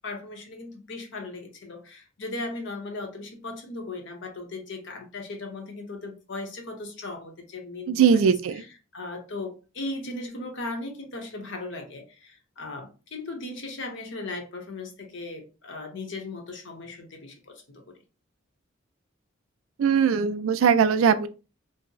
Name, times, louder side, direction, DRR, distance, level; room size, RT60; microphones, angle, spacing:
voice 1, 0.0-18.0, left 2 dB, 60° left, 0.7 m, -37 dB
voice 2, 7.9-8.6 19.8-21.3, right 7 dB, 80° right, 0.3 m, -20 dB
2.6 x 2.0 x 3.8 m
head